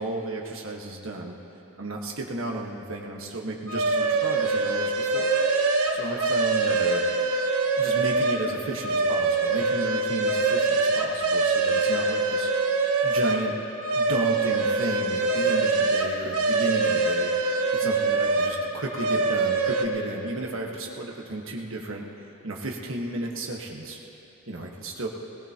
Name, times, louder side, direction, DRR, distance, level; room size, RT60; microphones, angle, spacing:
voice 1, 0.0-1.3 1.8-5.6 5.9-7.0 7.8-13.5 13.9-17.3 17.8-22.0 22.4-24.0 24.5-25.1, right 2 dB, 65° right, 0 dB, 1.5 m, -33 dB
sound 1, 3.7-8.5 8.8-13.5 13.8-18.6 18.9-19.8, right 3 dB, 85° right, 1.2 m, -24 dB
20.0 x 18.5 x 3.0 m, 3.0 s
head